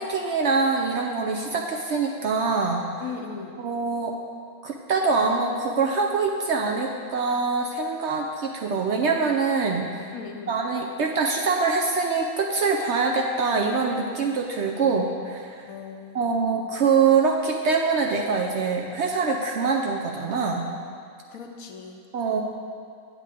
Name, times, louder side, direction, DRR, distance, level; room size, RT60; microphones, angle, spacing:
voice 1, 0.0-2.9 3.6-4.2 4.6-10.1 10.5-15.7 16.1-20.7 22.1-22.4, right 4 dB, 65° right, 1 dB, 0.7 m, -24 dB
voice 2, 3.0-3.6 10.1-10.6 15.7-16.3 21.3-22.0, left 6 dB, 70° left, 3 dB, 1.1 m, -38 dB
8.4 x 8.4 x 3.5 m, 2.3 s
omnidirectional pair, 1.6 m